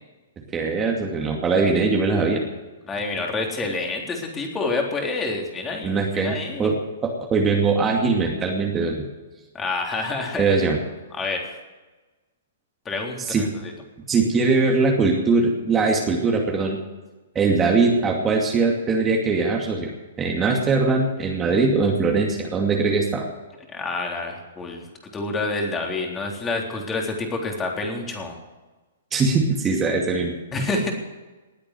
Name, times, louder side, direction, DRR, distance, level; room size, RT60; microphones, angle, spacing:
voice 1, 0.5-2.4 5.8-9.0 10.4-10.8 13.3-13.4 14.1-16.8 17.3-19.9 20.2-23.2 29.1-30.3, right 4 dB, 20° right, 0 dB, 2.5 m, -21 dB
voice 2, 2.9-6.7 9.5-10.5 11.1-11.5 12.9-13.7 23.7-24.8 25.1-28.3 30.5-30.9, left 3 dB, 15° left, 1 dB, 3.6 m, -28 dB
19.5 x 8.8 x 7.8 m, 1.2 s
figure-of-eight pair, 120°, 0 cm